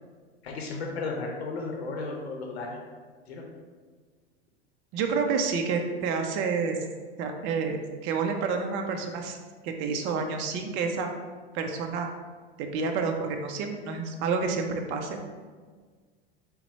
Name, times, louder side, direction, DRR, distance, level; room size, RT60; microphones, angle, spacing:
voice 1, 0.4-2.8 3.3-3.4, left 3 dB, 75° left, 0 dB, 0.7 m, -34 dB
voice 2, 4.9-6.8 7.2-9.4 9.6-11.1 11.5-12.1 12.6-15.2, right 5 dB, 40° right, 4 dB, 0.5 m, -29 dB
4.2 x 2.1 x 4.0 m, 1.5 s
hypercardioid pair, 90°, 32 cm